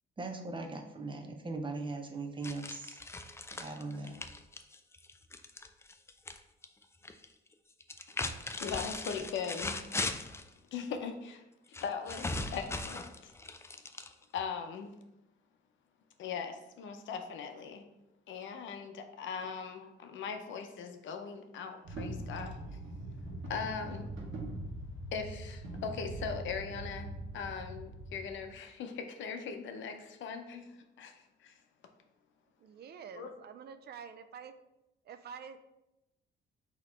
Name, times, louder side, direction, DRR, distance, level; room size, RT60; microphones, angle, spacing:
voice 1, 0.2-3.0 3.5-4.2, right 3 dB, 25° right, 4 dB, 0.7 m, -39 dB
sound 1, 2.4-6.4 6.6-7.3 7.8-10.5 11.7-14.4, left 2 dB, 15° left, 0.3 m, -39 dB
voice 2, 8.6-9.8 10.7-11.4 11.8-13.3 14.3-14.9 16.2-17.8 18.3-22.6 23.5-24.1 25.1-27.1 27.3-30.7 31.0-31.5 33.1-33.3, left 6 dB, 75° left, 6 dB, 0.6 m, -40 dB
sound 2, 21.8-28.6, right 1 dB, 75° right, 1.3 m, -42 dB
voice 3, 32.6-34.5 35.0-35.6, right 7 dB, 55° right, 10 dB, 0.4 m, -47 dB
4.1 x 3.0 x 4.2 m, 0.91 s
cardioid pair, 90°, 20 cm